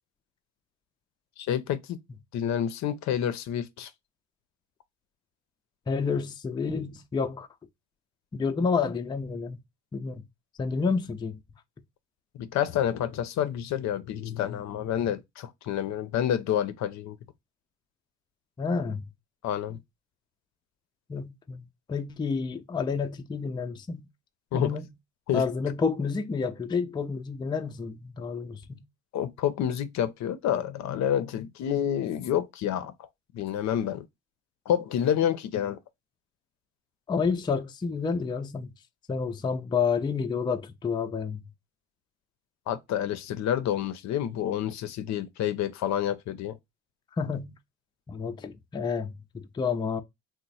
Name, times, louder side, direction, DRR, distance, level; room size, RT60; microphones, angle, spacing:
voice 1, 1.4-2.0 2.3-3.9 12.4-17.2 19.4-19.8 24.5-24.7 25.3-25.4 29.1-32.9 33.3-34.1 34.7-35.8 42.7-46.6, left 10 dB, 65° left, 0.5 m, -28 dB
voice 2, 5.9-7.5 8.3-9.6 9.9-10.2 10.6-11.4 18.6-19.1 21.1-24.1 24.5-24.9 25.3-28.8 37.1-38.7 39.1-41.4 47.2-47.5 48.1-50.0, left 5 dB, 15° left, 0.4 m, -29 dB
3.0 x 2.1 x 3.9 m
supercardioid pair, 80°, 30 cm